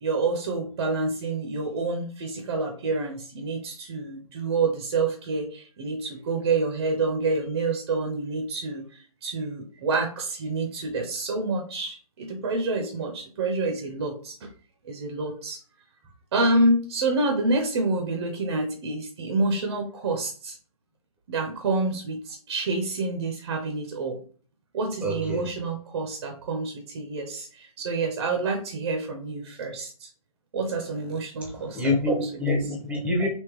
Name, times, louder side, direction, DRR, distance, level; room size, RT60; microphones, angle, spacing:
voice 1, 0.0-14.5 14.8-15.6 16.3-20.6 21.3-24.2 24.7-30.1 30.5-31.8 32.1-32.3, right 3 dB, 45° right, 4 dB, 0.6 m, -28 dB
voice 2, 25.0-25.5 31.4-33.3, left 1 dB, 5° right, -1 dB, 0.7 m, -26 dB
3.5 x 2.8 x 2.9 m, 0.43 s
figure-of-eight pair, 130°, 19 cm